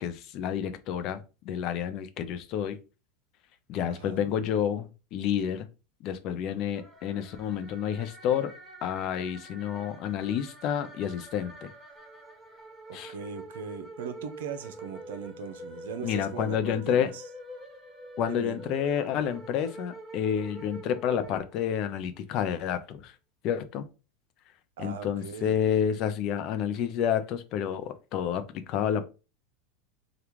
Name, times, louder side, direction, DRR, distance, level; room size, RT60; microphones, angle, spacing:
voice 1, 0.0-2.8 3.7-5.7 6.0-8.5 8.8-11.7 12.9-13.1 16.0-17.1 18.2-23.1 23.4-23.9 24.8-28.4 28.7-29.1, left 9 dB, 50° left, 0.5 m, -29 dB
voice 2, 3.9-4.3 12.9-17.2 18.3-18.7 24.8-25.5, right 6 dB, 75° right, 0.6 m, -39 dB
sound 1, 6.7-22.0, right 1 dB, 10° right, 1.3 m, -46 dB
3.4 x 2.3 x 3.0 m
hypercardioid pair, 95°, 0 cm